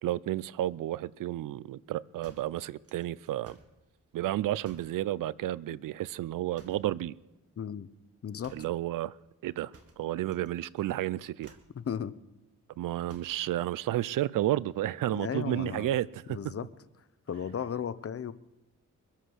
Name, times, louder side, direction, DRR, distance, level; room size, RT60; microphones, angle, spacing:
voice 1, 0.0-3.6 4.1-7.1 8.5-9.2 9.4-11.6 12.8-16.4, right 14 dB, 90° right, 0.5 m, -32 dB
sound 1, 2.2-3.8 4.6-5.0 6.5-7.0 8.4-8.8 9.7-10.5 10.8-11.0 11.4-11.8 13.1-13.5, right 4 dB, 50° right, 1.8 m, -56 dB
voice 2, 7.6-7.9 8.2-8.5 11.7-12.1 15.1-15.9 16.3-16.7 17.3-18.3, left 8 dB, 45° left, 0.8 m, -35 dB
23.5 x 7.9 x 6.3 m
cardioid pair, 85°, 31 cm